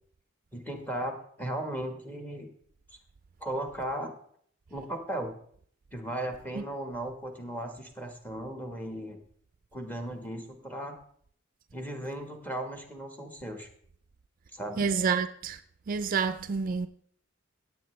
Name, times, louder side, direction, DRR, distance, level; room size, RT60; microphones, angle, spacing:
voice 1, 0.5-2.5 3.4-4.1 4.7-5.4 5.9-9.2 9.7-11.0 11.7-13.7 14.5-14.9, right 1 dB, 10° left, 1.3 m, -36 dB
voice 2, 14.8-15.6 15.9-16.9, right 5 dB, 45° right, 0.4 m, -28 dB
16.0 x 8.4 x 3.2 m
head